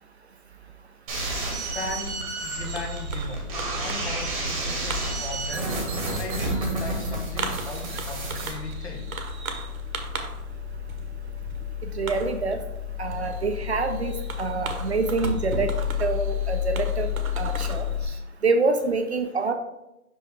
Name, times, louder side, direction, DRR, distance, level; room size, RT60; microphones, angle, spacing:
sound 1, 1.1-8.5, right 2 dB, 25° right, 1.2 m, -31 dB
voice 1, 1.6-9.1, left 3 dB, 45° left, 3 dB, 1.2 m, -38 dB
Fireworks, 2.6-18.1, left 5 dB, 65° right, 1.1 m, -32 dB
voice 2, 11.9-12.6 13.0-15.7 16.0-18.1 18.4-19.5, right 3 dB, 45° right, 6 dB, 0.6 m, -26 dB
5.4 x 5.3 x 3.5 m, 0.89 s
hypercardioid pair, 160°, 45 cm